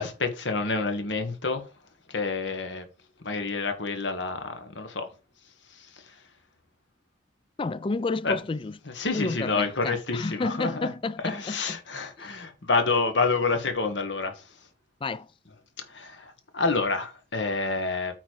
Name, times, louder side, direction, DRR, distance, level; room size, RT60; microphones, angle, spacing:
voice 1, 0.0-1.6 2.1-2.8 3.2-5.1 5.8-5.9 8.2-8.4 8.9-10.9 11.2-14.4 15.9-18.2, left 4 dB, 80° left, 1.5 m, -28 dB
voice 2, 7.6-8.8 9.1-11.8 12.2-12.3 15.0-15.3, left 3 dB, 30° left, 0.3 m, -31 dB
8.9 x 4.2 x 4.7 m
head